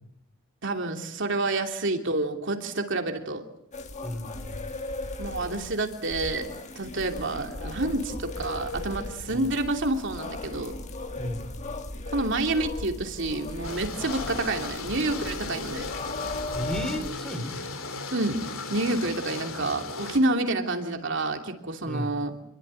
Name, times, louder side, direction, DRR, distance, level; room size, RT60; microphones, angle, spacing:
voice 1, 0.6-3.4 5.2-6.5 6.7-10.7 12.1-15.9 18.1-18.4 18.7-22.3, right 2 dB, 55° right, 4 dB, 3.0 m, -28 dB
sound 1, 3.7-17.1, left 2 dB, 35° left, 1.8 m, -37 dB
voice 2, 4.0-4.7 9.3-9.4 11.2-11.5 16.5-17.5 21.8-22.2, equal, 5° left, 6 dB, 4.0 m, -34 dB
sound 2, 13.6-20.2, left 3 dB, 65° left, 3.3 m, -36 dB
27.5 x 21.5 x 9.1 m, 0.75 s
head